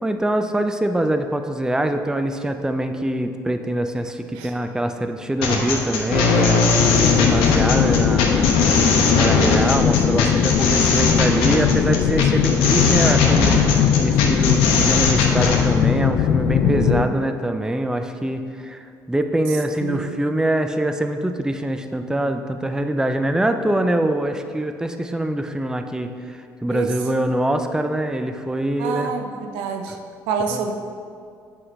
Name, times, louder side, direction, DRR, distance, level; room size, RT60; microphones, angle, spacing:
voice 1, 0.0-6.6 7.2-8.5 9.0-13.6 14.0-29.1 30.5-30.7, right 1 dB, 5° right, 7 dB, 0.5 m, -24 dB
sound 1, 5.4-15.6, left 3 dB, 75° left, 1.0 m, -20 dB
sound 2, 6.8-17.0, left 9 dB, 55° left, 0.4 m, -19 dB
voice 2, 16.6-17.2 19.8-20.1 26.7-26.9 28.8-30.0 30.3-30.7, right 6 dB, 75° right, 5 dB, 0.6 m, -27 dB
7.7 x 5.6 x 3.3 m, 2.2 s
hypercardioid pair, 60°, 9 cm